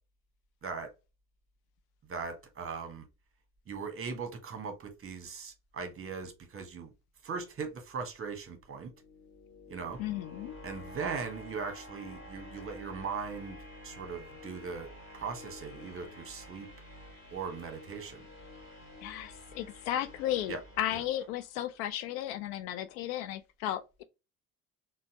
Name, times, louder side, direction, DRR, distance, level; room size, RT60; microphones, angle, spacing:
voice 1, 2.1-3.0 3.7-6.9 7.2-8.9 9.7-10.0 10.6-13.6 13.8-16.7 17.3-18.2 20.5-20.6 20.9-21.0, right 5 dB, 30° right, 1.0 m, -39 dB
sound 1, 8.7-21.7, left 2 dB, 25° left, 1.9 m, -50 dB
voice 2, 10.0-10.6 19.0-24.0, left 12 dB, 65° left, 0.5 m, -34 dB
3.9 x 2.1 x 2.9 m
figure-of-eight pair, 55°, 46 cm